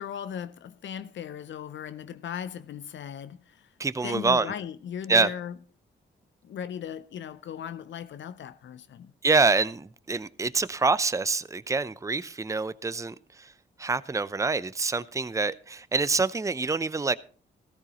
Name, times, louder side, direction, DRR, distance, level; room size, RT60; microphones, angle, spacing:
voice 1, 0.0-3.7 4.0-5.5 6.4-9.1, left 8 dB, 65° left, 0.5 m, -37 dB
voice 2, 3.8-4.5 5.1-5.3 9.2-13.5 13.8-17.2, right 4 dB, 15° right, 0.6 m, -26 dB
14.0 x 13.0 x 3.0 m
supercardioid pair, 45°, 21 cm